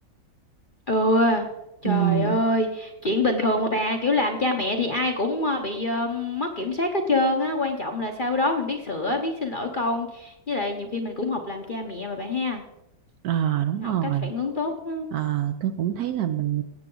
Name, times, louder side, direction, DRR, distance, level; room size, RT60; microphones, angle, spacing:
voice 1, 0.9-1.5 1.8-12.6 13.8-15.1, left 2 dB, 40° left, 3 dB, 0.8 m, -25 dB
voice 2, 1.8-2.4 13.2-14.3 15.1-16.6, right 11 dB, 70° right, 9 dB, 1.0 m, -25 dB
16.5 x 8.1 x 3.8 m, 0.88 s
omnidirectional pair, 2.0 m